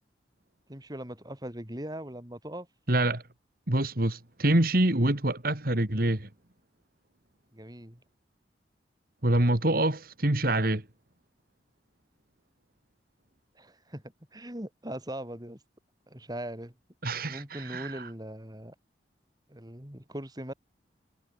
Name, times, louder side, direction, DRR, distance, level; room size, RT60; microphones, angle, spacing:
voice 1, 0.7-2.7 7.5-8.0 13.5-15.6 16.1-16.7 17.2-18.7 19.5-20.5, right 1 dB, 20° right, 4.4 m, -40 dB
voice 2, 2.9-3.2 3.7-6.3 9.2-10.8 17.0-18.1, right 1 dB, 50° right, 2.5 m, -26 dB
head